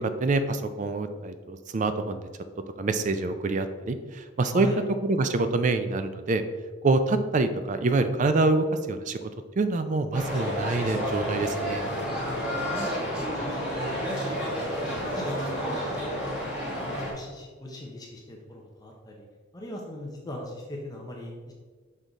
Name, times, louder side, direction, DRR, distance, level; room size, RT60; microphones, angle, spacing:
voice 1, 0.0-2.3 2.8-4.7 5.0-6.4 6.8-9.2 9.6-11.8, right 3 dB, 35° right, 9 dB, 0.4 m, -26 dB
voice 2, 4.5-4.8 12.2-14.5 14.8-16.4 16.8-19.2 19.5-21.5, left 1 dB, 20° left, -1 dB, 0.7 m, -40 dB
sound 1, 10.1-17.1, equal, 5° right, 1.4 m, -30 dB
6.3 x 3.8 x 3.9 m, 1.4 s
head